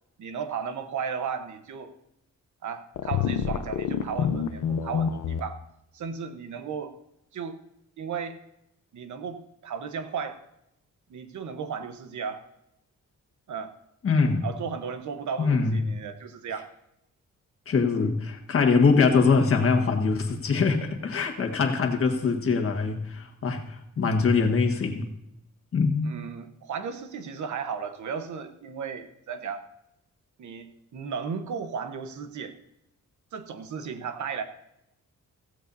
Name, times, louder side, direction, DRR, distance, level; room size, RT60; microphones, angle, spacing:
voice 1, 0.2-1.9 2.6-5.6 5.9-6.9 7.3-7.6 8.0-8.4 8.9-10.4 11.1-12.4 13.5-13.7 14.4-16.7 18.0-18.1 26.0-29.6 30.4-32.5 33.3-34.4, right 6 dB, 70° right, 8 dB, 1.1 m, -35 dB
sound 1, 3.0-5.4, left 8 dB, 90° left, 0.8 m, -27 dB
voice 2, 14.0-14.5 15.4-15.8 17.7-25.1 25.7-26.1, left 4 dB, 45° left, 3 dB, 1.5 m, -23 dB
15.5 x 15.5 x 2.7 m, 0.82 s
wide cardioid pair, 170°, 30 cm